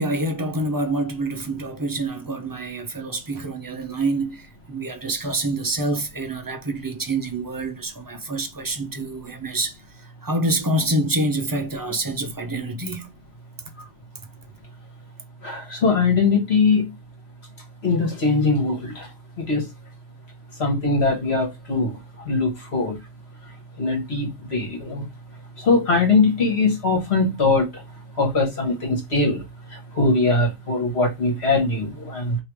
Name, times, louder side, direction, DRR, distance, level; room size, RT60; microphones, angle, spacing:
voice 1, 0.0-13.1, right 2 dB, 30° right, 0.4 m, -26 dB
voice 2, 15.4-16.8 17.8-19.1 19.5-19.7 20.6-21.9 22.3-23.0 23.8-25.0 25.6-27.7 28.2-29.4 30.0-32.4, left 3 dB, 50° left, 1.6 m, -21 dB
3.3 x 3.0 x 4.7 m
omnidirectional pair, 1.4 m